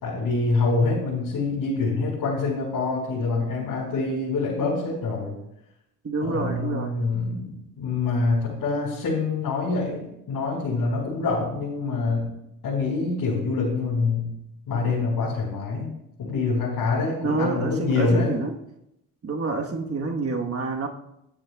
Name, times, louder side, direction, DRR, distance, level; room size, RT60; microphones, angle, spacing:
voice 1, 0.0-5.4 6.2-12.3 12.6-14.3 14.7-15.9 16.2-18.3, left 3 dB, 65° left, -6 dB, 4.5 m, -25 dB
voice 2, 6.0-7.0 17.2-18.6 19.2-20.9, right 3 dB, 40° right, 2 dB, 1.3 m, -27 dB
21.0 x 8.7 x 2.3 m, 0.81 s
supercardioid pair, 70°, 37 cm